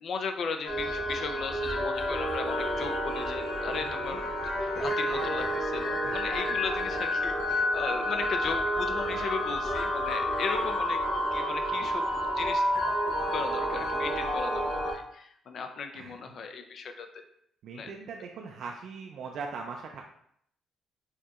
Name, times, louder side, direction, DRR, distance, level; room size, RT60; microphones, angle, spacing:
voice 1, 0.0-4.3 4.6-11.0 11.3-12.6 13.3-17.2 17.7-17.9, left 5 dB, 60° left, 6 dB, 0.5 m, -36 dB
sound 1, 0.6-14.9, equal, 85° left, 1.0 m, -30 dB
voice 2, 3.7-4.2 6.0-6.2 6.5-6.6 15.9-16.2 17.6-20.0, right 5 dB, 70° right, 1 dB, 0.4 m, -41 dB
4.3 x 2.9 x 2.4 m, 0.69 s
cardioid pair, 90°, 0 cm